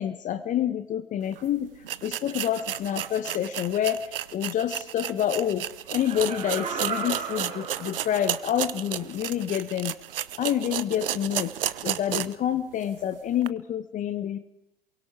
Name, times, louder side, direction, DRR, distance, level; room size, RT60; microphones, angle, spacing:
voice 1, 0.0-1.7 2.0-5.7 5.9-9.9 10.4-11.5 11.8-14.4, left 10 dB, 25° left, 12 dB, 1.0 m, -28 dB
sound 1, 1.3-1.4 1.8-12.5 12.8-12.9 13.4-13.5, right 11 dB, 65° right, 0.9 m, -33 dB
Laughter, 5.9-8.5 9.0-9.1, right 5 dB, 25° right, 5.6 m, -35 dB
28.0 x 23.0 x 4.8 m, 0.86 s
figure-of-eight pair, 90°, 30 cm